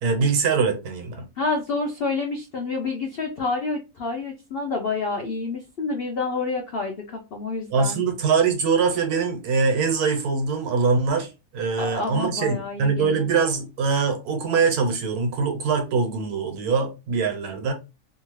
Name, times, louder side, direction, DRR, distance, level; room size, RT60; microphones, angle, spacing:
voice 1, 0.0-1.2 7.7-17.7, right 5 dB, 75° right, 1.3 m, -23 dB
voice 2, 1.4-8.0 11.8-13.3, left 3 dB, 80° left, 0.5 m, -28 dB
2.7 x 2.5 x 3.0 m
omnidirectional pair, 1.7 m